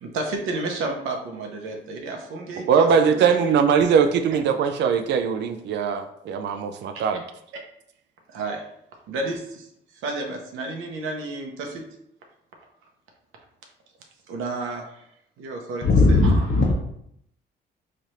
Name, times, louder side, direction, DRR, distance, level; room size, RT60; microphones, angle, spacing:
voice 1, 0.0-2.9 3.1-3.3 6.9-7.1 8.3-8.6 9.1-9.7 9.9-11.8 14.3-15.0 15.4-16.6, right 2 dB, 85° right, 2 dB, 0.8 m, -31 dB
voice 2, 2.6-7.2, right 6 dB, 60° right, 8 dB, 0.4 m, -21 dB
voice 3, 15.8-16.7, left 2 dB, 55° left, -4 dB, 0.8 m, -17 dB
3.2 x 2.5 x 4.2 m, 0.74 s
cardioid pair, 90°, 20 cm